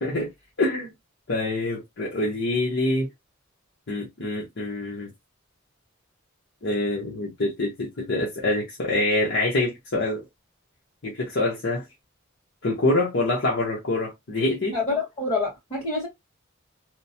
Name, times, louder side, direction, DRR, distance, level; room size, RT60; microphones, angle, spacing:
voice 1, 0.0-0.3 0.6-0.9 1.3-3.1 3.9-5.1 6.6-10.2 11.0-11.8 12.6-14.8, left 2 dB, 60° left, 0.8 m, -25 dB
voice 2, 14.7-16.1, left 3 dB, 25° left, 1.6 m, -27 dB
3.0 x 2.1 x 2.8 m
head